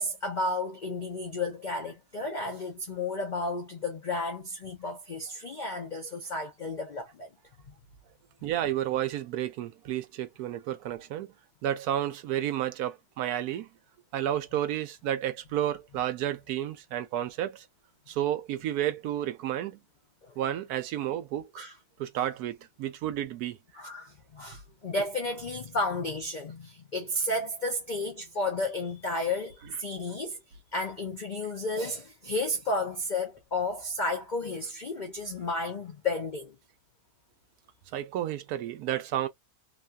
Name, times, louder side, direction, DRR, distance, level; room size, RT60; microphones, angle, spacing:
voice 1, 0.0-7.3 20.2-20.4 21.6-21.7 23.7-30.4 30.7-36.6, left 2 dB, 80° left, 0.4 m, -32 dB
voice 2, 8.4-11.3 11.6-13.7 14.1-17.6 18.1-19.8 20.4-21.7 22.0-23.6 37.9-39.3, right 12 dB, 85° right, 1.1 m, -31 dB
3.0 x 2.3 x 2.4 m
omnidirectional pair, 1.6 m